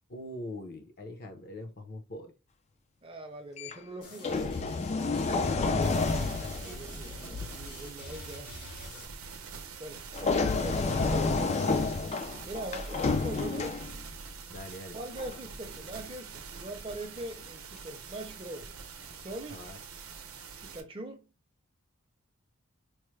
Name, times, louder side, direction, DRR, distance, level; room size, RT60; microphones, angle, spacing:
voice 1, 0.1-2.3 5.3-6.8 7.4-7.5 11.5-11.8 14.5-15.0 16.8-17.0 19.5-19.8, left 1 dB, 50° left, 0.8 m, -43 dB
voice 2, 3.0-4.6 6.4-8.5 9.8-11.4 12.4-13.8 14.9-18.7 19.2-19.7 20.6-21.3, right 1 dB, 25° right, 0.7 m, -42 dB
sound 1, 3.6-3.7 4.2-7.7 10.1-14.2 15.2-15.4, left 3 dB, 30° left, 0.4 m, -30 dB
sound 2, 4.0-9.1, left 2 dB, 85° left, 1.8 m, -48 dB
sound 3, 5.8-20.8, right 5 dB, 70° right, 0.7 m, -45 dB
4.6 x 2.1 x 3.1 m
head